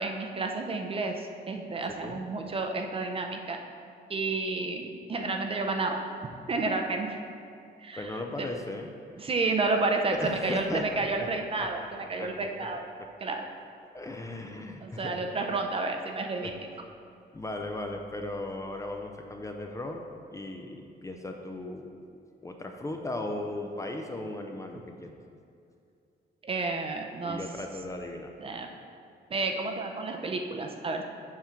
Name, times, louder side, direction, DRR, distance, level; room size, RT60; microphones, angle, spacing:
voice 1, 0.0-3.6 4.1-6.0 6.5-7.2 7.8-8.1 8.4-8.5 9.2-12.8 13.2-13.4 14.8-16.6 24.7-24.8 26.4-27.4 28.4-28.7 29.3-31.0, right 3 dB, 30° right, 4 dB, 0.5 m, -31 dB
voice 2, 1.9-2.2 8.0-8.9 9.2-9.3 10.1-10.8 11.2-11.3 11.6-11.7 12.1-12.7 13.9-15.3 16.4-16.5 17.3-20.0 20.3-22.0 22.4-25.1 27.2-28.3, left 2 dB, 20° left, 3 dB, 0.4 m, -37 dB
7.2 x 3.8 x 5.7 m, 2.5 s
cardioid pair, 140°, 18 cm